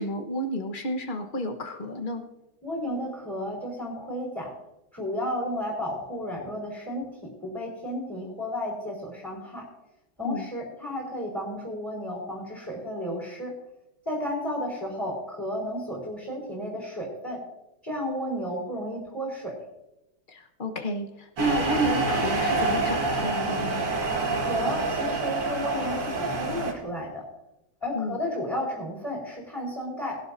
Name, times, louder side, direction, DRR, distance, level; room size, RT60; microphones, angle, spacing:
voice 1, 0.0-2.2 10.2-10.5 20.3-23.8 27.9-28.2, right 1 dB, 30° left, 5 dB, 1.1 m, -31 dB
voice 2, 2.6-4.5 4.9-7.0 7.4-9.6 10.2-13.5 14.1-17.4 17.8-19.5 24.4-27.2 27.8-30.2, left 1 dB, 10° left, -3 dB, 4.3 m, -32 dB
sound 1, 21.4-26.7, right 3 dB, 75° right, 2.7 m, -27 dB
20.5 x 12.0 x 2.7 m, 0.91 s
omnidirectional pair, 2.1 m